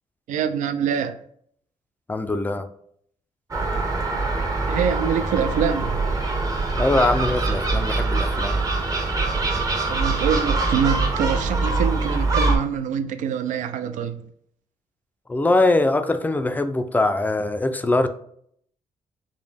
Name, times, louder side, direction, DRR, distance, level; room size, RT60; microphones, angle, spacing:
voice 1, 0.3-1.2 4.7-6.1 9.9-14.3, right 7 dB, 80° right, 0.4 m, -25 dB
voice 2, 2.1-2.7 6.8-8.6 15.3-18.1, left 2 dB, 15° left, 0.3 m, -22 dB
Gull seagull, 3.5-12.6, right 3 dB, 30° right, 0.7 m, -23 dB
5.0 x 2.1 x 3.4 m
cardioid pair, 120°, 13 cm